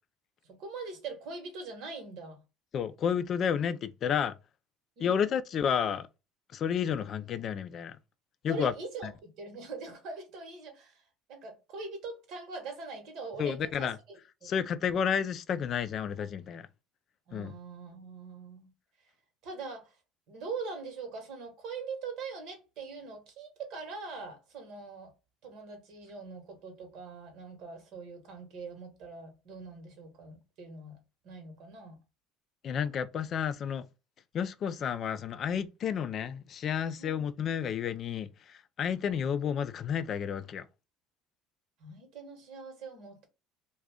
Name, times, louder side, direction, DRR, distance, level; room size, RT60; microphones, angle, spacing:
voice 1, 0.4-2.4 5.0-5.3 8.5-14.5 17.3-18.7 19.0-19.1 19.4-20.0 20.3-25.1 25.4-31.0 31.2-32.0 37.0-37.2 41.8-43.3, right 4 dB, 65° right, 1.1 m, -42 dB
voice 2, 2.7-4.3 5.0-6.1 6.5-8.0 8.4-8.7 9.0-9.1 13.4-14.0 14.4-16.7 17.3-17.5 32.6-33.8 34.3-40.7, left 8 dB, 50° left, 0.3 m, -31 dB
2.4 x 2.2 x 3.4 m
hypercardioid pair, 80°, 0 cm